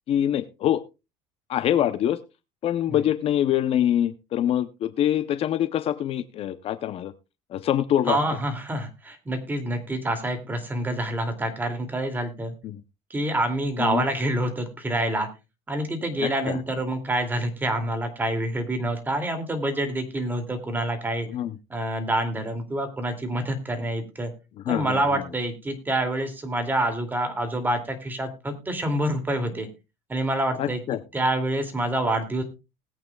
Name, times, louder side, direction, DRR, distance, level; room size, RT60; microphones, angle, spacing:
voice 1, 0.1-0.8 1.5-2.2 2.6-7.1 7.5-8.2 12.6-12.8 13.8-14.0 16.2-16.6 21.3-21.6 24.6-25.2 30.6-31.0, left 11 dB, 45° left, 12 dB, 0.7 m, -25 dB
voice 2, 8.1-12.6 13.1-15.3 15.7-21.3 21.7-24.3 24.7-29.7 30.1-30.8 31.1-32.4, right 1 dB, 15° right, 5 dB, 2.5 m, -27 dB
20.0 x 8.6 x 2.3 m, 0.27 s
cardioid pair, 130°, 13 cm